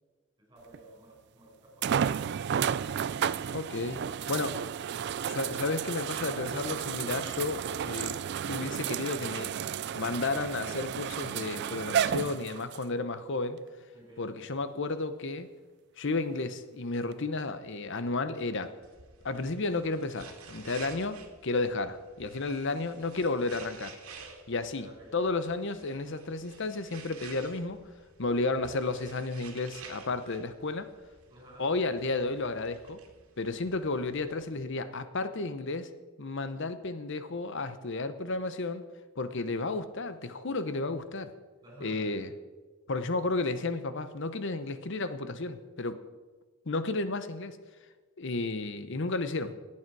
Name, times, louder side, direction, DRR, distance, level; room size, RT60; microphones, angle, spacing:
voice 1, 0.4-2.2 13.9-14.4 24.7-25.2 31.3-31.8 41.6-42.2, right 1 dB, 20° right, -2 dB, 4.8 m, -53 dB
sound 1, 0.7-0.8 1.8-12.8 13.6-13.7 17.1-17.2, right 8 dB, 50° right, 0.3 m, -32 dB
voice 2, 3.5-4.0 4.3-4.5 5.3-8.2 8.5-9.5 9.9-13.6 14.2-15.5 16.0-18.7 19.2-24.0 24.5-24.9 25.1-27.8 28.2-30.9 31.6-33.0 33.4-35.9 36.2-38.8 39.2-41.3 41.8-42.3 42.9-46.0 46.7-47.6 48.2-49.6, left 3 dB, 55° left, 11 dB, 0.8 m, -32 dB
sound 2, 18.8-34.6, right 5 dB, 75° right, 2.0 m, -52 dB
18.5 x 8.7 x 4.7 m, 1.3 s
head